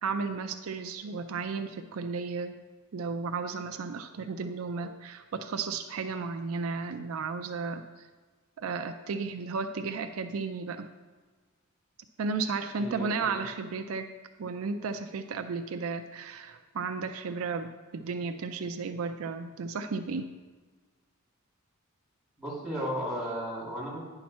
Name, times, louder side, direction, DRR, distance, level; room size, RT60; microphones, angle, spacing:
voice 1, 0.0-2.5 2.9-8.1 8.6-10.9 12.2-14.1 14.4-20.3, right 4 dB, 70° right, 8 dB, 0.4 m, -34 dB
voice 2, 12.8-13.3 22.4-24.0, equal, ahead, -7 dB, 2.9 m, -34 dB
9.5 x 5.8 x 4.2 m, 1.4 s
head